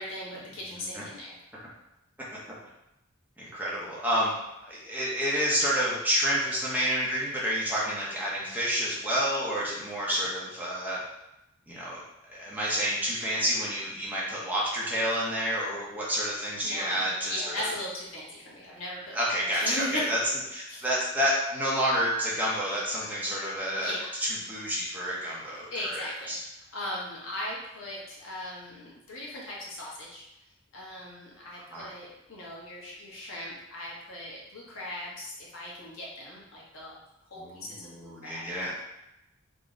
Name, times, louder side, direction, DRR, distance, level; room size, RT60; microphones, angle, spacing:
voice 1, 0.0-1.3 16.6-17.0 17.2-20.0 20.7-20.8 23.7-24.1 25.7-30.2 30.7-37.0 37.3-38.5, left 1 dB, 90° left, -5 dB, 1.3 m, -38 dB
voice 2, 3.4-4.3 4.7-11.0 11.7-12.0 12.3-17.7 19.1-20.2 20.5-24.0 24.2-26.4 31.7-31.9 37.4-38.7, equal, 10° right, -7 dB, 0.9 m, -29 dB
3.7 x 2.8 x 3.7 m, 0.89 s
head